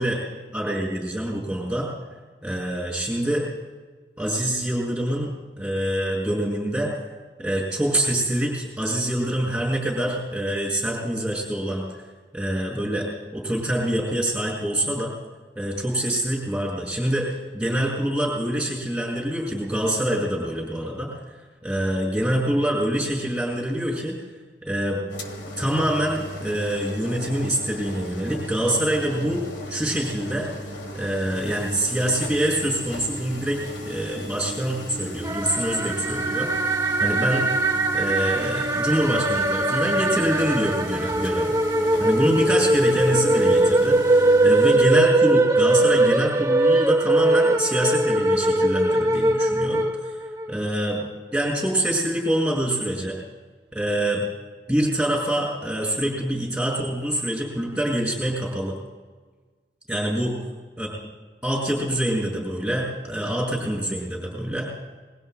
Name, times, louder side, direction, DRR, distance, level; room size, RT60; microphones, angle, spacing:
voice 1, 0.5-1.9 2.4-3.5 4.2-5.3 5.6-6.9 7.4-11.8 12.3-15.1 15.6-17.3 17.5-21.2 21.6-24.2 24.6-25.0 25.6-29.4 29.7-30.5 30.9-37.5 37.9-41.6 42.0-50.2 50.5-51.1 51.3-53.2 53.7-54.3 54.7-58.7 59.9-60.3 60.8-60.9 61.4-64.7, right 1 dB, 5° right, -4 dB, 5.9 m, -25 dB
sound 1, 25.1-44.8, equal, 85° left, 1.9 m, -35 dB
sound 2, 35.2-50.5, right 2 dB, 20° right, 0.7 m, -21 dB
27.5 x 22.0 x 2.2 m, 1.4 s
head